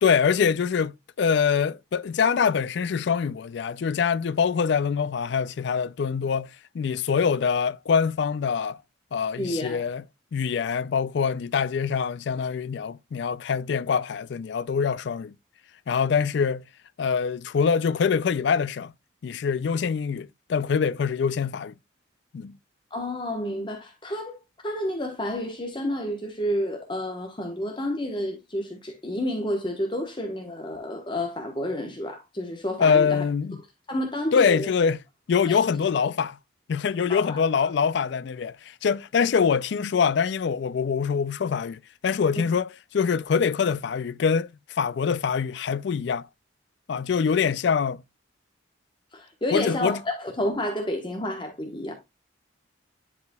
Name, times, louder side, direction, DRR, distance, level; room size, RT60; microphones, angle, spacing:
voice 1, 0.0-8.8 9.1-10.0 10.3-15.3 15.9-16.6 17.0-18.9 19.2-21.7 22.3-22.6 32.8-33.6 34.3-35.0 35.3-36.4 36.7-46.3 46.9-48.0 49.5-50.0, left 6 dB, 60° left, 0.3 m, -24 dB
voice 2, 9.4-9.8 22.9-24.3 24.6-33.2 33.9-34.7 35.5-35.6 37.1-37.4 49.1-51.9, left 1 dB, 25° left, 1.1 m, -30 dB
10.5 x 4.9 x 2.2 m
head